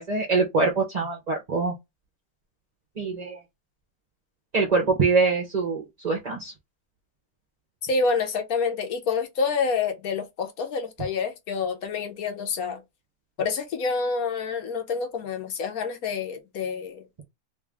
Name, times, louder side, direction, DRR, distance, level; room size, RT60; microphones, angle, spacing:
voice 1, 0.0-1.7 3.0-3.4 4.5-6.5, right 4 dB, 40° right, 0.6 m, -24 dB
voice 2, 7.8-12.8 13.4-17.0, left 5 dB, 70° left, 1.2 m, -28 dB
3.3 x 2.4 x 3.4 m
omnidirectional pair, 1.6 m